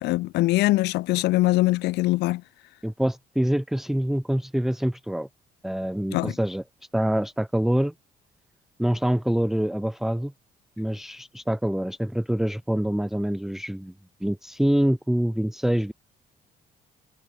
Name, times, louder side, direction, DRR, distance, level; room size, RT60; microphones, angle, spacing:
voice 1, 0.0-2.4 6.1-6.3, left 19 dB, 85° left, 2.6 m, -22 dB
voice 2, 2.8-5.3 5.6-6.6 6.9-7.9 8.8-10.3 10.8-13.9 14.2-15.9, equal, ahead, 1.1 m, -25 dB
cardioid pair, 110°, 17 cm